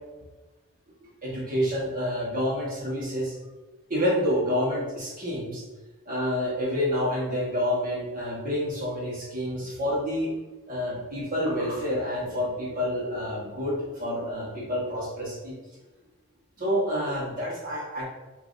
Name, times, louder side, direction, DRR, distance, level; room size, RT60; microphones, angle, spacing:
voice 1, 1.2-3.3 3.9-5.6 6.0-10.3 10.7-15.5 16.6-18.0, equal, 40° right, -5 dB, 1.4 m, -28 dB
5.5 x 2.9 x 2.6 m, 1.2 s
head